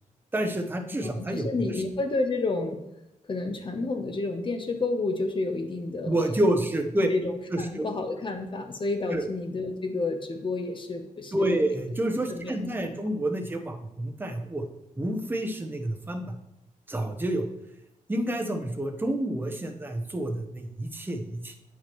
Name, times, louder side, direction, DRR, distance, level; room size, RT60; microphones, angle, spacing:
voice 1, 0.3-1.5 6.1-7.1 7.5-7.9 9.1-9.2 11.3-14.6 15.0-16.3 16.9-17.4 18.1-21.6, right 1 dB, 15° right, 4 dB, 0.8 m, -28 dB
voice 2, 1.0-2.8 3.3-6.4 7.1-11.7 12.3-12.5, left 3 dB, 35° left, 5 dB, 0.9 m, -30 dB
8.8 x 4.9 x 3.0 m, 0.85 s
wide cardioid pair, 130°, 14 cm